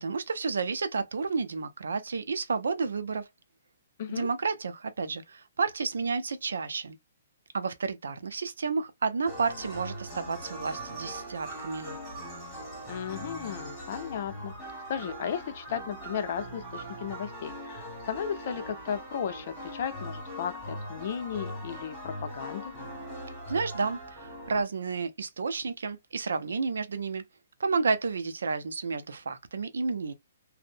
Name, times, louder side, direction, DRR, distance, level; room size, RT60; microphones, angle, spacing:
voice 1, 0.0-3.2 4.1-6.9 7.5-12.0 23.5-27.2 27.6-30.1, right 4 dB, 85° right, 0.5 m, -31 dB
sound 1, 9.3-24.6, equal, ahead, 1.6 m, -41 dB
voice 2, 12.9-14.5 14.9-22.7, left 8 dB, 50° left, 0.5 m, -35 dB
2.6 x 2.0 x 2.5 m
hypercardioid pair, 150°, 0 cm